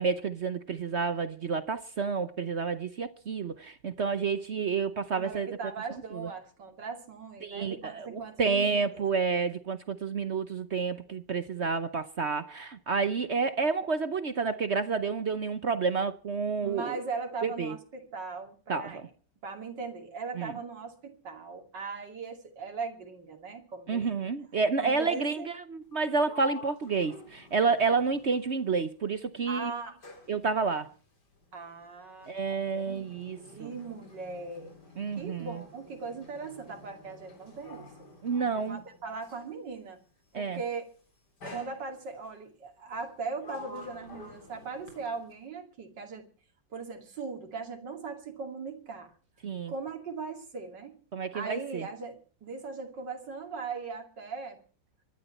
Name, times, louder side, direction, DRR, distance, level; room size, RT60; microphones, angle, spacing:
voice 1, 0.0-5.5 6.1-6.3 7.4-17.0 17.4-17.7 18.7-19.1 20.4-20.5 23.9-29.7 30.3-30.9 32.3-33.7 35.0-35.5 38.2-38.8 40.3-40.6 49.4-49.7 51.1-51.9, right 5 dB, 50° right, 0.9 m, -30 dB
voice 2, 5.1-9.0 16.6-19.1 19.4-24.1 24.8-25.5 29.5-30.0 30.7-30.8 31.5-34.8 35.2-38.1 38.6-40.0 40.3-40.8 41.5-46.2 46.7-49.1 49.7-50.9 51.3-54.6, right 4 dB, 65° right, 3.3 m, -39 dB
Sliding door, 25.8-29.1 29.4-39.6 40.5-40.8 41.4-42.3 42.9-45.4, left 3 dB, 60° left, 4.5 m, -49 dB
24.0 x 12.0 x 4.3 m
omnidirectional pair, 2.0 m